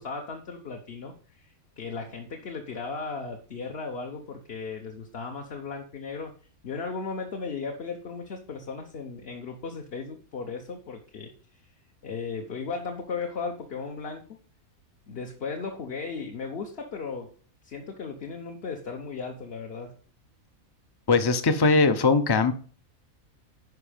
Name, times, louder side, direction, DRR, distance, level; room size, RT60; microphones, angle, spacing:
voice 1, 0.0-6.3 6.6-11.7 12.0-14.2 15.1-17.3 17.6-19.9, left 4 dB, 50° left, 3 dB, 1.1 m, -36 dB
voice 2, 21.1-22.5, left 4 dB, 25° left, 11 dB, 0.6 m, -20 dB
11.0 x 5.0 x 5.0 m, 0.42 s
omnidirectional pair, 1.5 m